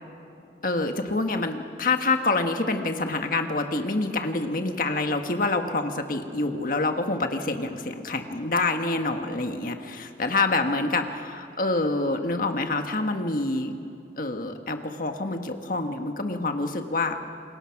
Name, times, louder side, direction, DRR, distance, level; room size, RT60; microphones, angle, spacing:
voice 1, 0.6-11.0 11.6-13.8 14.2-17.2, left 3 dB, 50° left, 5 dB, 1.6 m, -26 dB
28.0 x 21.0 x 6.0 m, 2.6 s
head